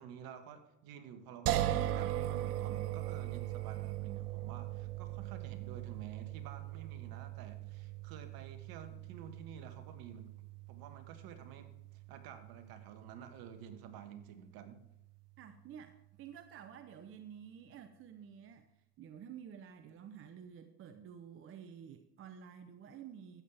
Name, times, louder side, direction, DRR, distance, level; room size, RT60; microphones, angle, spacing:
voice 1, 0.0-10.3 10.7-14.8, right 8 dB, 50° right, 8 dB, 1.4 m, -51 dB
sound 1, 1.5-14.5, right 13 dB, 75° right, 0.8 m, -40 dB
voice 2, 15.4-18.7 19.0-23.4, right 8 dB, 30° right, 9 dB, 0.6 m, -51 dB
13.0 x 8.5 x 3.4 m, 0.84 s
hypercardioid pair, 100°, 46 cm